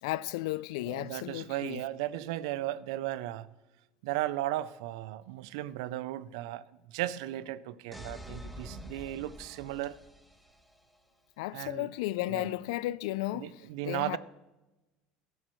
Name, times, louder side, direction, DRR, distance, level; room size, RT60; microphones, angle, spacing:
voice 1, 0.0-1.8 11.4-14.2, left 17 dB, 85° left, 0.3 m, -34 dB
voice 2, 0.9-3.5 4.0-10.0 11.5-11.9 12.3-12.6 12.8-12.9 13.3-14.2, right 14 dB, 85° right, 0.5 m, -36 dB
sound 1, 7.9-10.8, equal, ahead, 1.1 m, -47 dB
16.0 x 12.0 x 3.1 m
supercardioid pair, 110°, 3 cm